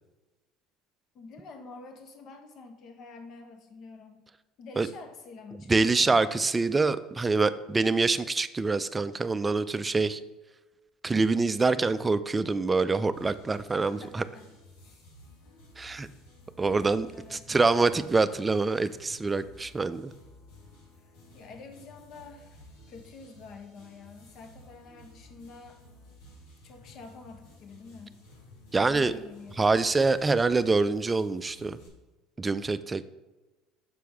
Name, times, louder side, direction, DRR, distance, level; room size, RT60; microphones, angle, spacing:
voice 1, 1.1-4.2 4.6-6.2 13.8-14.5 14.8-15.0 17.1-17.8 21.0-25.8 26.6-28.2 28.8-29.6, left 4 dB, 55° left, 5 dB, 1.0 m, -48 dB
voice 2, 5.7-10.2 11.0-14.2 15.8-16.1 16.6-20.1 28.7-29.1 29.6-31.8 32.4-33.0, right 3 dB, 20° right, 13 dB, 0.3 m, -25 dB
sound 1, 13.1-31.9, left 1 dB, 80° left, 1.6 m, -54 dB
6.8 x 4.7 x 3.5 m, 1.1 s
supercardioid pair, 90°, 0 cm